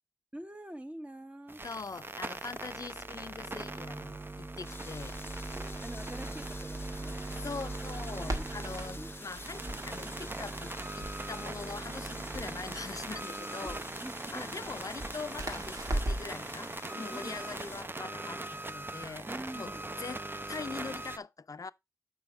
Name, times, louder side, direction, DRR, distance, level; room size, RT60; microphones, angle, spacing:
voice 1, 0.3-1.6 5.5-7.4 8.3-8.5 9.0-9.1 9.6-9.7 13.6-13.7 14.0-14.7 15.5-15.6 17.0-17.4 19.3-19.8, right 1 dB, 20° right, 0.9 m, -45 dB
sound 1, 1.5-21.2, right 2 dB, 40° right, 0.6 m, -40 dB
voice 2, 1.6-5.2 7.4-13.8 14.3-19.3 19.6-19.7 20.0-20.2 20.5-21.7, left 4 dB, 80° left, 0.4 m, -42 dB
sound 2, 4.6-17.8, left 2 dB, 40° left, 0.6 m, -49 dB
Crackle, 4.8-16.4, right 1 dB, 85° right, 1.8 m, -41 dB
7.3 x 5.5 x 4.5 m
wide cardioid pair, 65°, 6 cm